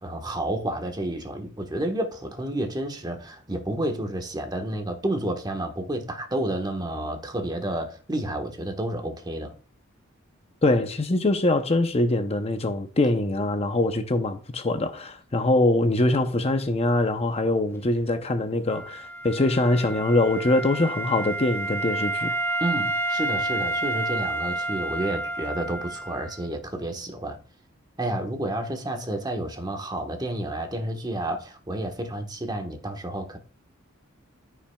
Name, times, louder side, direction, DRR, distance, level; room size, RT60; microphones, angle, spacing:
voice 1, 0.0-9.5 22.6-27.4 28.0-33.4, right 1 dB, 20° right, 1.3 m, -30 dB
voice 2, 10.6-22.3, left 2 dB, 30° left, 0.7 m, -23 dB
Wind instrument woodwind instrument, 18.7-26.4, right 2 dB, 10° left, 1.3 m, -30 dB
14.0 x 5.8 x 2.3 m
head